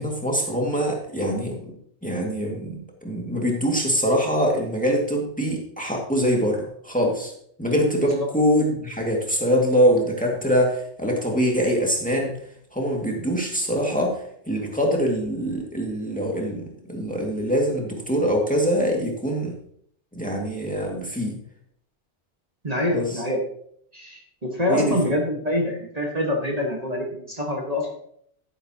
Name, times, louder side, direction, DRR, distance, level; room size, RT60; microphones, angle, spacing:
voice 1, 0.0-1.7 2.0-7.3 7.6-12.3 12.7-19.5 20.1-21.4 22.9-23.1 24.7-25.0, equal, 5° left, -1 dB, 2.1 m, -24 dB
voice 2, 22.6-23.4 23.9-27.9, left 1 dB, 35° right, 0 dB, 1.7 m, -25 dB
12.0 x 9.9 x 2.9 m, 0.65 s
omnidirectional pair, 1.2 m